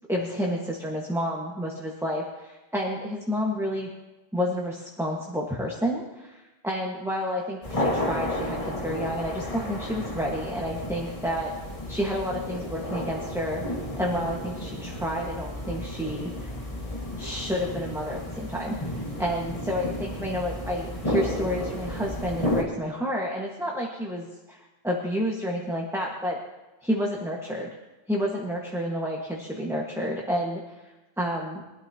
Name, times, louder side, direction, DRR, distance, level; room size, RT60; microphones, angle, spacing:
voice 1, 0.1-3.9 4.3-11.5 11.9-13.6 14.0-16.5 17.2-18.9 19.2-26.4 26.8-27.7 28.1-30.7 31.2-31.6, equal, 5° right, -2 dB, 1.6 m, -30 dB
sound 1, 7.6-22.6, left 1 dB, 30° left, 2.1 m, -32 dB
23.0 x 13.0 x 3.0 m, 1.1 s
omnidirectional pair, 1.1 m